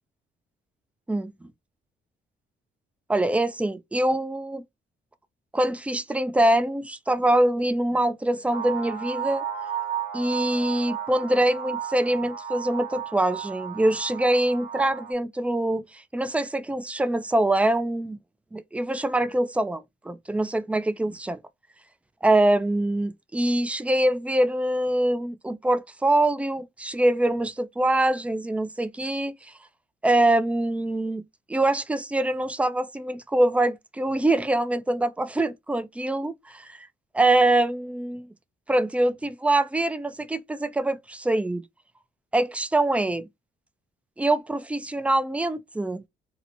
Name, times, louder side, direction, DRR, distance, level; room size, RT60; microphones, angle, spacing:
voice 1, 1.1-1.5 3.1-4.6 5.5-9.4 10.1-18.2 18.5-21.4 22.2-29.5 30.0-31.2 31.5-36.9 37.1-38.3 38.7-41.6 42.3-43.3 44.2-46.0, right 1 dB, 5° right, 0.3 m, -24 dB
sound 1, 8.5-15.1, right 8 dB, 50° right, 0.9 m, -34 dB
2.9 x 2.1 x 2.5 m
cardioid pair, 90°, 20 cm